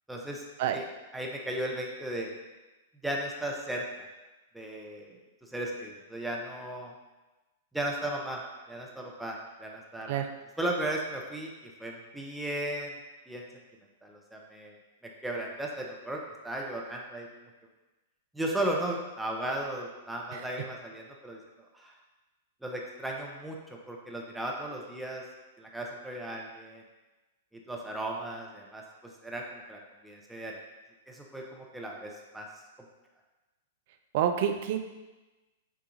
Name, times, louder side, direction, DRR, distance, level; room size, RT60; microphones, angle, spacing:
voice 1, 0.1-0.4 0.7-0.8 1.1-2.3 3.0-3.8 4.5-6.9 7.7-8.4 8.7-10.2 10.6-12.9 13.3-13.4 14.0-14.7 15.2-17.3 18.3-21.4 21.7-21.9 22.6-25.2 25.6-26.8 27.7-28.8 29.2-30.6 31.1-32.5, right 1 dB, 5° right, -2 dB, 0.6 m, -36 dB
voice 2, 34.1-34.8, right 9 dB, 50° right, 7 dB, 0.4 m, -28 dB
6.0 x 2.4 x 2.9 m, 1.1 s
figure-of-eight pair, 105°, 0 cm